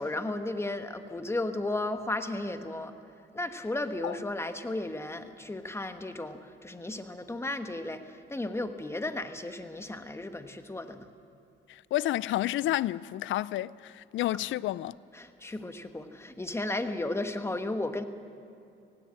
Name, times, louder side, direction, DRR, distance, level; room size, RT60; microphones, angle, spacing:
voice 1, 0.0-2.9 3.3-11.1 15.1-18.0, left 2 dB, 15° left, 1.3 m, -34 dB
voice 2, 11.7-15.0, left 14 dB, 75° left, 0.5 m, -30 dB
17.5 x 17.0 x 8.8 m
cardioid pair, 90°, 20 cm